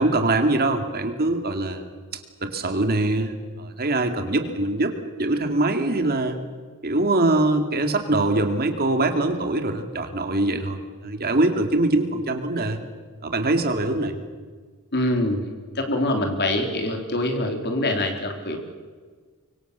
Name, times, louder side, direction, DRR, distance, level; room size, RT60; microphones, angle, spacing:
voice 1, 0.0-1.8 2.1-4.9 5.2-6.4 6.8-12.8 13.2-14.1, right 2 dB, 45° right, 6 dB, 2.4 m, -23 dB
voice 2, 14.9-15.4 15.8-18.6, left 1 dB, 50° left, 4 dB, 3.8 m, -24 dB
24.5 x 24.5 x 6.9 m, 1.5 s
head